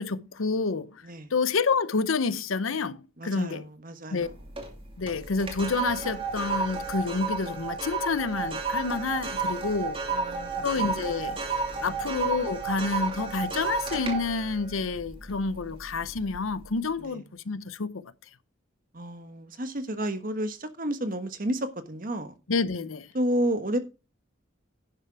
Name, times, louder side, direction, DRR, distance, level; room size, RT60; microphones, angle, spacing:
voice 1, 0.0-1.0 1.3-3.6 4.1-4.3 5.0-10.0 10.6-11.4 11.8-18.0 22.5-23.1, left 4 dB, 80° left, 0.7 m, -29 dB
voice 2, 3.2-4.3 10.1-10.9 11.7-11.8 17.0-17.2 18.9-22.3 23.1-23.8, right 1 dB, 45° right, 1.3 m, -31 dB
sound 1, 4.2-4.7 5.1-15.6 16.1-16.4, right 4 dB, 25° right, 2.2 m, -31 dB
11.0 x 6.7 x 4.6 m
head